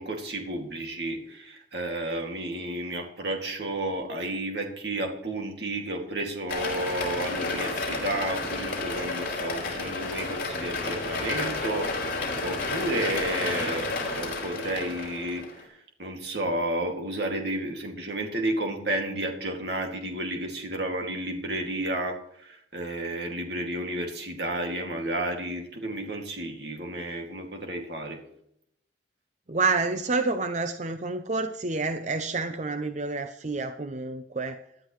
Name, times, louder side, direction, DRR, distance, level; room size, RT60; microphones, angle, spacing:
voice 1, 0.0-28.2, right 1 dB, 60° right, 2 dB, 2.4 m, -32 dB
sound 1, 6.5-15.6, left 3 dB, 50° left, 5.2 m, -31 dB
voice 2, 29.5-34.6, right 3 dB, 35° right, 8 dB, 0.7 m, -28 dB
19.5 x 11.5 x 3.2 m, 0.72 s
head